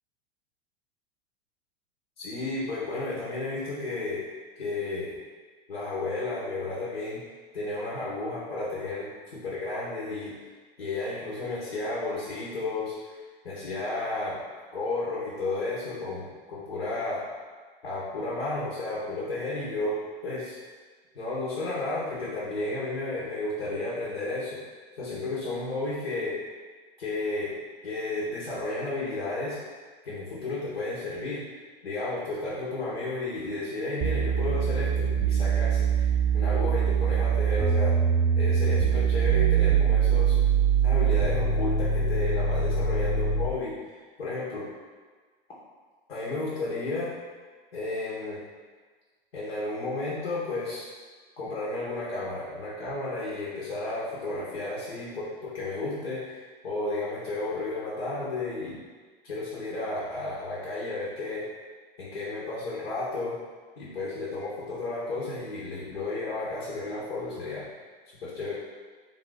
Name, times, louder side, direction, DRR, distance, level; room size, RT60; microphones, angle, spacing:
voice 1, 2.2-4.2 4.6-5.1 5.7-7.2 7.5-10.3 10.8-13.2 13.4-14.4 14.7-17.2 17.8-20.6 21.1-24.6 25.0-26.4 27.0-27.5 27.8-29.6 30.0-31.5 31.8-38.0 38.4-40.4 40.8-43.8 44.2-44.7 46.1-47.1 47.7-48.4 49.3-50.9 51.4-56.4 56.6-58.8 59.2-61.5 62.0-63.4 63.8-67.7 68.2-68.5, left 2 dB, 90° left, -8 dB, 1.1 m, -32 dB
sound 1, 34.0-43.6, right 6 dB, 20° right, 0.5 m, -23 dB
3.8 x 2.5 x 4.0 m, 1.4 s
hypercardioid pair, 100°, 29 cm